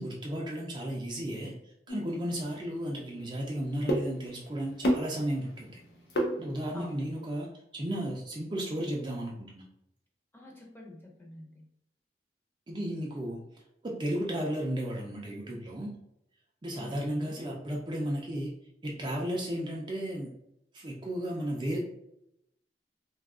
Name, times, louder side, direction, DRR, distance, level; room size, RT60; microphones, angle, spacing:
voice 1, 0.0-5.7 6.4-9.6 12.7-13.4 13.8-15.9 16.6-18.5 18.8-20.3 20.7-21.8, equal, 25° right, -2 dB, 0.4 m, -34 dB
sound 1, 1.9-7.0, equal, 65° left, 0.6 m, -34 dB
voice 2, 6.7-7.1 10.3-11.6 16.7-17.5, left 1 dB, 10° left, -2 dB, 0.7 m, -46 dB
2.7 x 2.3 x 3.5 m, 0.81 s
head